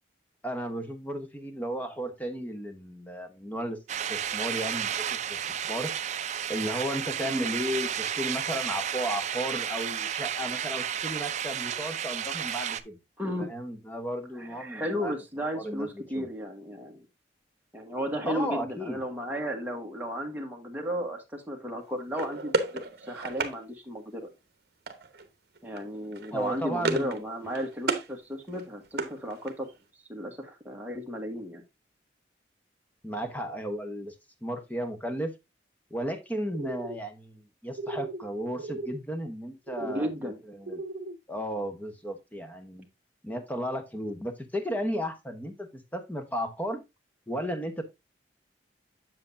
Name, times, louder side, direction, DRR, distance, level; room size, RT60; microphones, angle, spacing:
voice 1, 0.4-3.8 4.1-4.9 5.3-5.4 5.6-5.9 6.5-13.0 13.4-15.1 15.5-16.3 18.3-19.0 26.3-27.1 33.0-34.1 34.4-35.3 35.9-40.8 41.3-42.9 43.2-46.8 47.3-47.8, equal, 10° left, 1.0 m, -34 dB
sound 1, 3.9-12.8, right 9 dB, 40° right, 0.4 m, -32 dB
voice 2, 13.2-13.5 14.4-17.0 17.7-24.3 25.6-29.7 30.1-31.6 39.8-40.4, equal, 10° right, 1.3 m, -34 dB
sound 2, 22.1-23.6 24.9-25.3 25.5-25.8 26.1-27.2 27.4-28.1 28.5-29.7, right 3 dB, 55° right, 1.0 m, -32 dB
sound 3, 36.5-37.0 37.7-38.2 38.5-39.0 39.7-40.1 40.6-41.2, right 2 dB, 85° right, 0.6 m, -37 dB
7.7 x 7.2 x 2.6 m
head